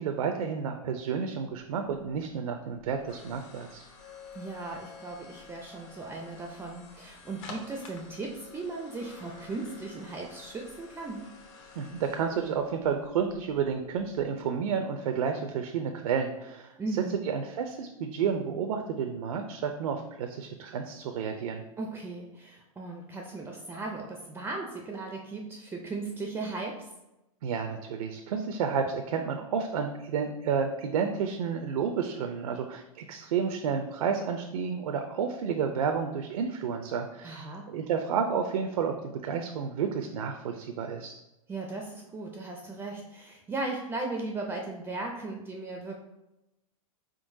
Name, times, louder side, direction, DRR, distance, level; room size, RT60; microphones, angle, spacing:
voice 1, 0.0-3.8 11.8-16.7 17.3-21.6 27.4-41.2, right 6 dB, 75° right, 5 dB, 0.5 m, -31 dB
sound 1, 1.7-14.6, left 4 dB, 55° left, 1.0 m, -50 dB
voice 2, 4.3-11.2 16.8-17.3 21.8-26.9 37.2-37.7 41.5-45.9, right 3 dB, 15° right, 1 dB, 0.4 m, -37 dB
4.3 x 3.7 x 2.6 m, 0.94 s
hypercardioid pair, 125°, 18 cm